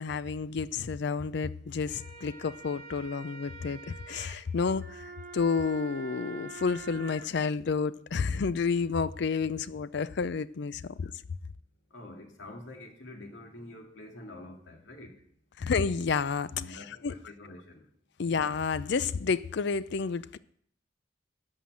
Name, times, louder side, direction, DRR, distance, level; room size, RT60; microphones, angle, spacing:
voice 1, 0.0-11.1 15.6-17.1 18.2-20.4, left 5 dB, 65° left, 0.5 m, -30 dB
sound 1, 1.7-7.3, right 3 dB, 45° right, 2.3 m, -46 dB
voice 2, 11.9-15.1 16.5-17.9, left 1 dB, 85° left, 2.2 m, -47 dB
11.5 x 5.7 x 7.6 m
head